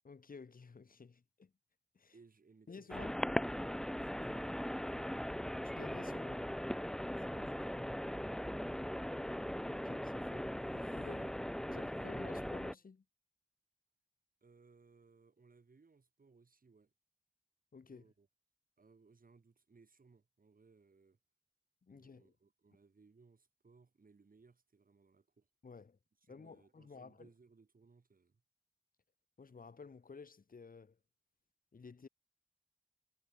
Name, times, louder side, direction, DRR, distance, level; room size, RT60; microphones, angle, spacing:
voice 1, 0.0-1.5 2.0-2.1 2.7-3.2 5.6-6.5 9.6-10.5 10.9-13.0 17.7-18.1 21.8-22.3 25.6-26.0 26.3-27.3 29.4-31.0 31.7-32.1, left 5 dB, 75° left, 1.8 m, -53 dB
voice 2, 2.1-3.2 4.0-5.1 7.0-9.2 10.4-11.4 11.7-11.9 14.4-16.9 17.9-18.3 18.8-21.2 21.9-25.5 26.2-28.4, right 4 dB, 75° right, 7.6 m, -66 dB
sound 1, 2.9-12.7, equal, 5° left, 0.4 m, -39 dB
wide cardioid pair, 55°, 15 cm